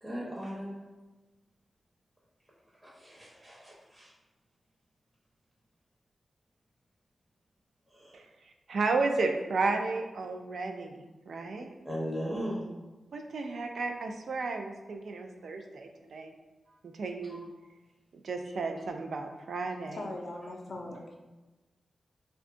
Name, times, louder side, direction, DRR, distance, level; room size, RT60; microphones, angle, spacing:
voice 1, 0.0-0.7 2.8-4.1 7.9-8.2 11.8-12.7 17.3-17.4, equal, 10° right, -6 dB, 0.6 m, -38 dB
voice 2, 8.7-11.7 13.1-16.3 16.8-17.4 18.1-20.1, right 3 dB, 75° right, 4 dB, 0.3 m, -33 dB
voice 3, 19.9-21.2, left 2 dB, 55° left, -1 dB, 0.4 m, -40 dB
2.5 x 2.2 x 3.7 m, 1.1 s
wide cardioid pair, 125°, 0 cm